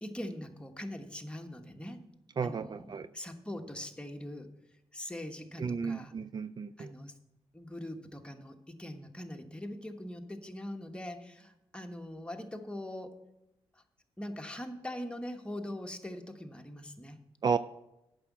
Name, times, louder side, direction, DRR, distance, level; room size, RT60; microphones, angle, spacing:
voice 1, 0.0-2.0 2.4-4.5 4.9-6.1 6.8-7.1 7.5-13.1 14.2-17.2, left 1 dB, 10° left, 4 dB, 1.2 m, -42 dB
voice 2, 2.4-3.1 5.6-6.9 17.4-17.6, right 6 dB, 40° right, 13 dB, 0.3 m, -33 dB
8.5 x 6.3 x 7.2 m, 0.90 s
cardioid pair, 75°, 11 cm